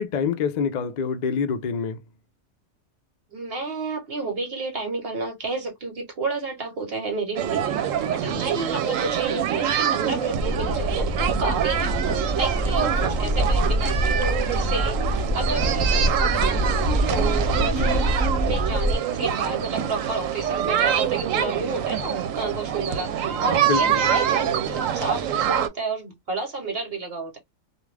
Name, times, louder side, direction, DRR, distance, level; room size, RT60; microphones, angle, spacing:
voice 1, 0.0-2.0 8.3-8.7 13.0-13.2 17.7-18.1 23.5-24.0, left 6 dB, 65° left, 0.4 m, -27 dB
voice 2, 3.3-18.1 18.4-27.4, right 3 dB, 55° right, 1.0 m, -31 dB
sound 1, 7.4-25.7, right 9 dB, 80° right, 1.0 m, -25 dB
sound 2, 10.4-18.9, equal, 40° left, 0.7 m, -25 dB
2.4 x 2.3 x 3.2 m
omnidirectional pair, 1.3 m